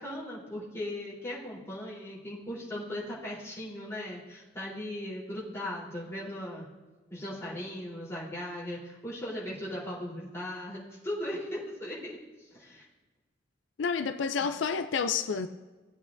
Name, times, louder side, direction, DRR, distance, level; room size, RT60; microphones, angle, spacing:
voice 1, 0.0-6.7 7.1-12.9, left 1 dB, 15° left, 3.6 m, -38 dB
voice 2, 13.8-15.5, left 6 dB, 85° left, 0.4 m, -29 dB
19.0 x 8.4 x 2.6 m
head